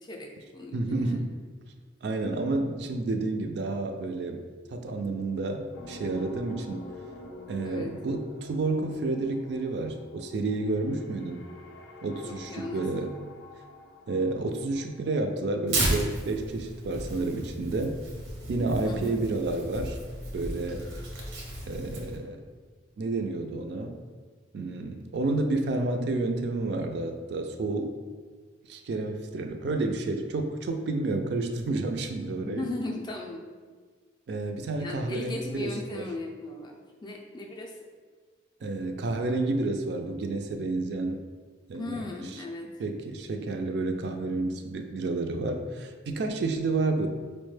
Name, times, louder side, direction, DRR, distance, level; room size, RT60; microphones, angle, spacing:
voice 1, 0.0-1.3 7.6-7.9 12.2-13.0 18.8-19.2 32.4-33.4 34.8-37.8 41.7-42.7, left 2 dB, 25° left, 0 dB, 0.3 m, -37 dB
voice 2, 0.7-1.3 2.0-4.4 4.7-6.8 7.5-11.5 12.0-13.1 14.1-18.0 18.5-20.0 20.3-20.9 21.7-22.4 23.0-23.9 24.5-27.9 28.7-32.6 34.3-36.0 38.6-41.2 41.7-42.0 42.8-47.1, right 2 dB, 60° right, 5 dB, 0.3 m, -30 dB
sound 1, 5.7-15.6, left 1 dB, 85° left, 0.5 m, -46 dB
Tearing, 15.7-22.2, right 1 dB, 90° right, 0.8 m, -34 dB
4.5 x 2.1 x 3.2 m, 1.5 s
head